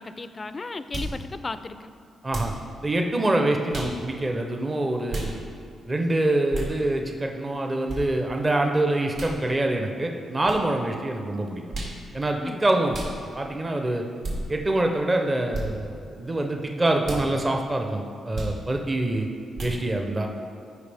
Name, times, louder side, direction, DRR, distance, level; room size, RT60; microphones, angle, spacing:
voice 1, 0.0-1.9 12.4-12.6, left 3 dB, 25° left, 12 dB, 0.3 m, -35 dB
sound 1, 0.9-1.2 2.3-2.6 3.7-4.0 5.1-5.3 6.5-6.7 7.9-8.0 9.1-9.4 10.4-10.6 11.7-12.0 12.9-13.1 14.2-14.4 15.5-15.7 17.0-17.3 18.3-18.6 19.5-19.8, right 1 dB, 70° right, 1.9 m, -32 dB
voice 2, 2.8-5.3 5.8-11.6 12.1-13.0 13.3-14.0 14.5-19.3 19.6-20.3, right 1 dB, 20° right, 3 dB, 0.6 m, -25 dB
14.5 x 5.1 x 3.4 m, 2.3 s
cardioid pair, 130°, 0 cm